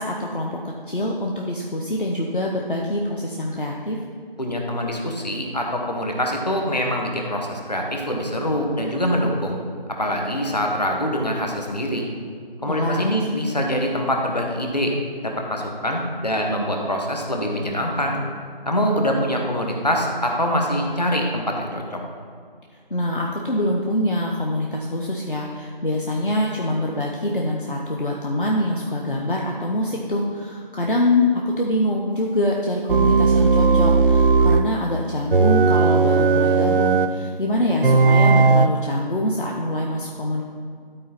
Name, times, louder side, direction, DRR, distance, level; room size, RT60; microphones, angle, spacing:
voice 1, 0.0-4.0 12.7-13.1 22.9-40.4, left 1 dB, 60° left, -1 dB, 0.8 m, -24 dB
voice 2, 4.4-9.6 10.0-12.1 12.6-14.9 15.2-18.2 18.7-22.0, equal, 45° left, 1 dB, 1.1 m, -24 dB
sound 1, 32.9-34.7 35.3-37.2 37.8-38.7, right 4 dB, 65° right, 0.4 m, -16 dB
12.0 x 4.4 x 4.1 m, 2.1 s
figure-of-eight pair, 170°, 29 cm